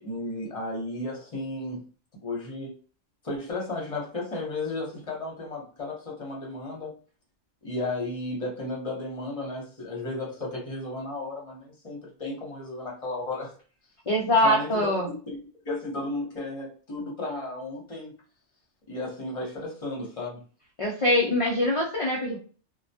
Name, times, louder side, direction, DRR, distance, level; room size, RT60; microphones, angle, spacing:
voice 1, 0.0-1.8 2.2-2.8 3.2-7.0 7.6-13.5 14.2-15.4 15.6-18.1 18.9-20.4, left 2 dB, 35° left, 0.8 m, -34 dB
voice 2, 14.1-15.1 20.8-22.4, left 1 dB, 50° left, 0.4 m, -23 dB
2.2 x 2.1 x 2.6 m
omnidirectional pair, 1.2 m